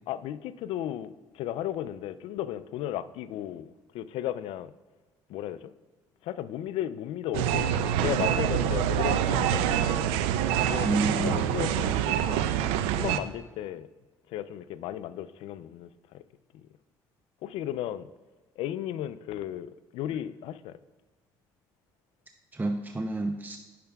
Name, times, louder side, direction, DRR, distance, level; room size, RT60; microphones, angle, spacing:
voice 1, 0.1-4.7 5.3-5.7 6.2-9.9 10.7-10.9 11.2-12.5 12.9-13.9 14.3-16.2 17.4-18.1 18.6-20.8, left 11 dB, 75° left, 14 dB, 0.5 m, -35 dB
sound 1, 7.3-13.2, right 9 dB, 90° right, 0.4 m, -26 dB
voice 2, 10.8-11.6 22.5-23.6, right 2 dB, 20° right, 5 dB, 0.7 m, -29 dB
17.5 x 6.8 x 2.3 m, 1.3 s
supercardioid pair, 75°, 10 cm